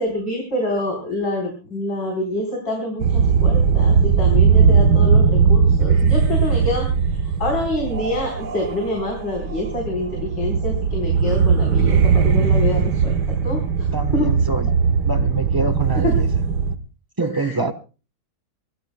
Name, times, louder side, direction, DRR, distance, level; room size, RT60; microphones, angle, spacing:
voice 1, 0.0-13.2 13.4-14.3 15.9-16.1 17.3-17.7, left 1 dB, 65° left, 5.0 m, -26 dB
sound 1, 3.0-16.7, right 6 dB, 60° right, 1.6 m, -18 dB
voice 2, 13.9-14.7 15.0-16.3 17.2-17.7, right 2 dB, 20° right, 0.5 m, -25 dB
26.0 x 17.5 x 2.2 m
omnidirectional pair, 2.1 m